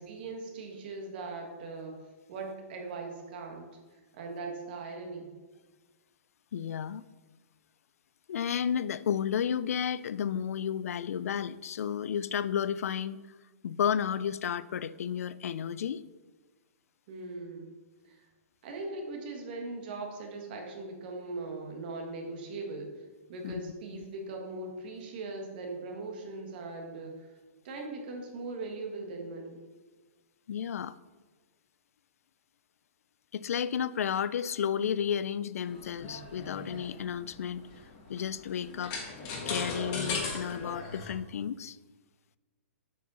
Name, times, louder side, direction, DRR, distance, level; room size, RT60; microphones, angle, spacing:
voice 1, 0.0-2.0 2.3-5.3 17.1-17.7 18.0-18.2 18.6-23.0 23.3-27.3 27.6-29.6, right 3 dB, 40° right, 2 dB, 1.6 m, -40 dB
voice 2, 6.5-7.0 8.3-13.2 13.6-16.0 23.4-24.0 30.5-31.0 33.3-37.7 38.1-39.0 39.5-41.8, left 8 dB, 80° left, 17 dB, 0.3 m, -32 dB
sound 1, 35.7-41.1, left 4 dB, 30° left, 1.4 m, -38 dB
7.7 x 5.1 x 5.5 m, 1.3 s
hypercardioid pair, 170°, 8 cm